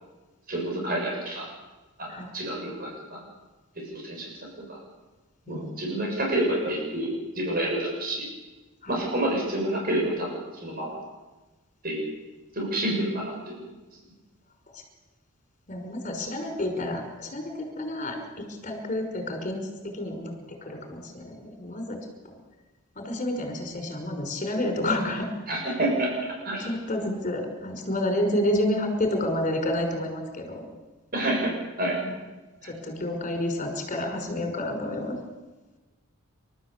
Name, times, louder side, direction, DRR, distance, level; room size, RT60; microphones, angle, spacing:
voice 1, 0.5-1.5 2.0-3.2 3.9-4.3 4.7-4.8 5.5-8.3 8.9-11.0 11.8-12.1 12.5-13.6 25.5-26.1 26.4-26.7 31.1-31.5 31.8-32.0, right 1 dB, 40° right, -1 dB, 7.3 m, -28 dB
voice 2, 5.5-5.8 8.8-9.0 14.7-14.8 15.7-18.2 18.6-20.3 20.6-22.0 22.3-22.4 23.0-25.3 25.6-25.7 26.6-30.6 32.0-32.1 32.8-35.2, left 1 dB, 35° left, 4 dB, 5.5 m, -29 dB
28.5 x 13.5 x 8.4 m, 1.2 s
head